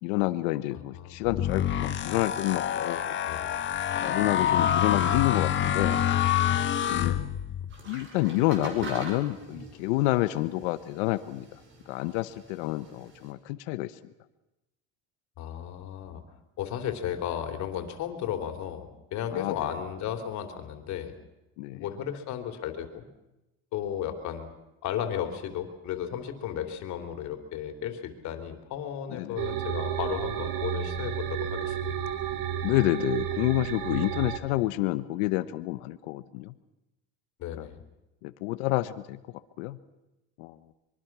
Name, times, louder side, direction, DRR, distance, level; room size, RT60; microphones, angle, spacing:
voice 1, 0.0-3.1 4.0-6.0 6.9-7.2 7.9-11.5 11.9-13.9 19.3-19.5 21.6-21.9 29.1-29.4 32.6-36.5 37.6-37.7 38.2-39.2 39.6-39.8 40.4-40.6, left 18 dB, 85° left, 12 dB, 1.1 m, -28 dB
voice 2, 0.7-1.3 3.2-3.5 7.0-7.2 15.4-16.2 16.6-21.1 21.7-23.1 23.7-24.5 24.8-31.9 37.4-37.8, left 9 dB, 55° left, 6 dB, 3.4 m, -34 dB
sound 1, 1.2-7.7, left 10 dB, 35° left, 1.6 m, -27 dB
sound 2, 7.7-13.3, right 3 dB, 35° right, 5.6 m, -43 dB
sound 3, 29.4-34.4, right 9 dB, 65° right, 2.5 m, -31 dB
25.0 x 23.0 x 6.1 m, 0.96 s
cardioid pair, 135°, 33 cm